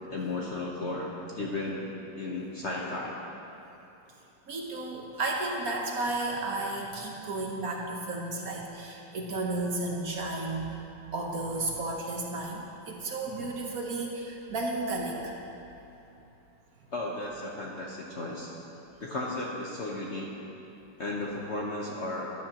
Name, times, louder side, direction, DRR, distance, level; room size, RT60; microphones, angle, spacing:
voice 1, 0.1-3.2 16.9-18.5 19.0-20.3 21.0-22.3, left 2 dB, 50° left, -3 dB, 0.9 m, -34 dB
voice 2, 4.5-10.8 11.1-15.3, right 2 dB, 55° right, -1 dB, 1.3 m, -33 dB
13.5 x 11.0 x 2.9 m, 2.9 s
omnidirectional pair, 2.0 m